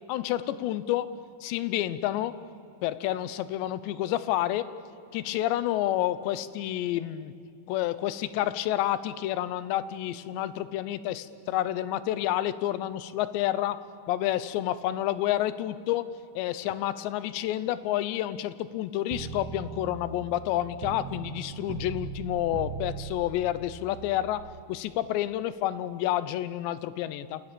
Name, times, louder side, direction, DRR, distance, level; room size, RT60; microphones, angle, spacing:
voice 1, 0.1-2.4 2.8-4.7 5.1-7.3 7.7-13.8 14.1-27.4, left 13 dB, 80° left, 15 dB, 3.0 m, -29 dB
sound 1, 19.1-24.6, right 6 dB, 70° right, 3.1 m, -40 dB
29.5 x 27.0 x 7.0 m, 2.6 s
omnidirectional pair, 5.3 m